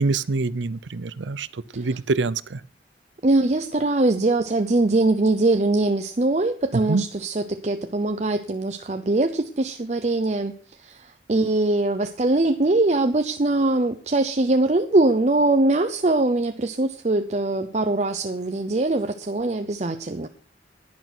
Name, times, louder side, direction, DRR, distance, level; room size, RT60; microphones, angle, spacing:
voice 1, 0.0-1.5 1.8-2.6 6.9-7.0, right 3 dB, 90° right, 0.7 m, -25 dB
voice 2, 3.2-10.5 10.8-20.3, right 2 dB, 40° right, 0.7 m, -22 dB
11.0 x 10.5 x 6.0 m
head